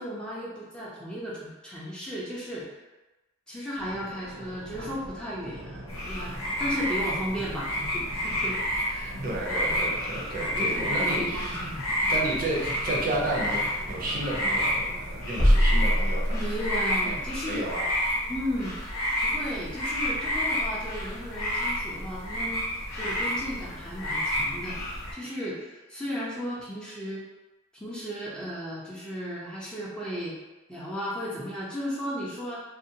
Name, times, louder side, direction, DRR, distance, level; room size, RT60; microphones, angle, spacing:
voice 1, 0.0-2.7 3.5-8.6 8.8-9.1 10.5-11.8 16.3-17.7 18.3-18.8 19.2-27.2 27.8-30.3 30.7-32.6, equal, 5° left, -7 dB, 0.4 m, -35 dB
sound 1, 3.8-16.2, equal, 85° right, 0.7 m, -43 dB
sound 2, 5.9-25.1, equal, 90° left, 0.6 m, -30 dB
voice 2, 9.2-11.6 12.1-13.6 13.8-16.7 17.0-17.2 17.5-17.9, right 2 dB, 45° right, -3 dB, 0.6 m, -32 dB
sound 3, 15.4-17.0, equal, 45° left, 0.8 m, -22 dB
2.5 x 2.1 x 2.7 m, 1.1 s
head